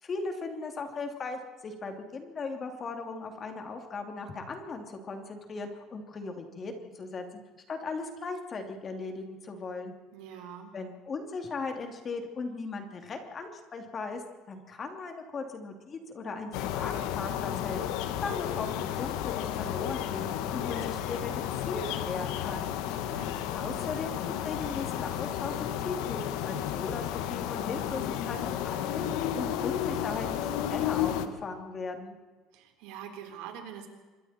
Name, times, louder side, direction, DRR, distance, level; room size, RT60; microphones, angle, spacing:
voice 1, 0.0-7.2 7.7-9.9 10.7-14.2 14.5-17.8 18.2-22.7 23.5-32.2, left 4 dB, 25° left, 4 dB, 2.8 m, -38 dB
voice 2, 10.1-10.7 23.1-23.3 32.5-33.9, right 9 dB, 90° right, 4 dB, 4.2 m, -44 dB
sound 1, 16.5-31.3, left 11 dB, 80° left, 1.6 m, -32 dB
26.0 x 22.5 x 4.4 m, 1.3 s
cardioid pair, 165°, 0 cm